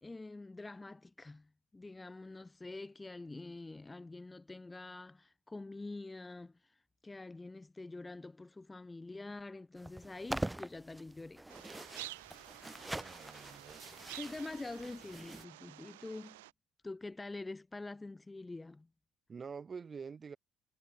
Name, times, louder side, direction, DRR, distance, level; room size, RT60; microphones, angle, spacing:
voice 1, 0.0-6.8 7.0-11.4 14.1-16.4 16.8-18.9, left 2 dB, 20° left, 1.4 m, -46 dB
sound 1, 9.8-15.4, right 1 dB, 10° right, 2.2 m, -44 dB
sound 2, 11.5-16.5, right 19 dB, 90° right, 3.6 m, -51 dB
voice 2, 12.8-13.8 19.3-20.4, right 5 dB, 40° right, 7.7 m, -47 dB
hypercardioid pair, 55°, 0 cm